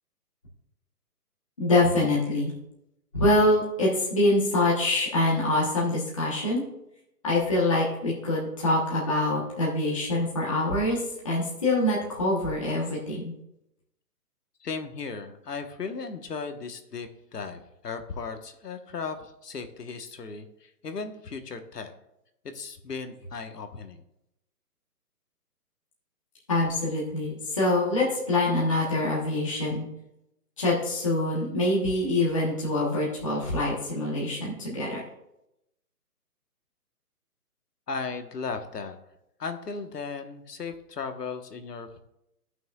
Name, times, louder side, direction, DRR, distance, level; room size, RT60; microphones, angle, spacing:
voice 1, 1.6-2.5 3.1-6.6 7.2-13.3 26.5-29.8 30.6-35.0, left 2 dB, 20° left, -5 dB, 1.1 m, -25 dB
voice 2, 14.6-21.9 22.5-24.0 37.9-39.0 39.4-42.0, left 5 dB, 80° left, 7 dB, 1.4 m, -36 dB
16.0 x 6.1 x 2.4 m, 0.84 s
hypercardioid pair, 180°, 47 cm